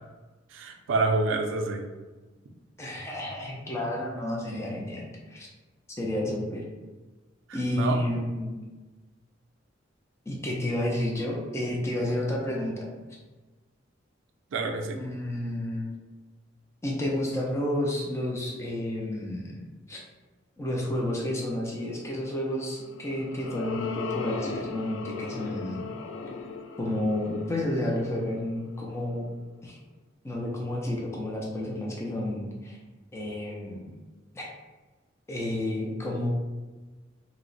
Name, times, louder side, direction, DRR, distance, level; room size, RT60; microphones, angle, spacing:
voice 1, 0.5-1.8 7.7-8.0 14.5-15.0, right 3 dB, 75° right, 4 dB, 0.4 m, -27 dB
voice 2, 2.8-5.5 6.0-6.6 7.5-8.6 10.3-12.9 14.9-15.9 16.8-19.6 19.9-20.0 20.6-25.9 26.8-29.3 29.6-29.8 30.2-32.8 33.1-33.9 34.3-34.5 35.3-36.3, left 1 dB, 15° left, -3 dB, 0.4 m, -31 dB
sound 1, 22.8-29.3, left 4 dB, 85° left, 0.3 m, -38 dB
2.9 x 2.0 x 3.8 m, 1.2 s
head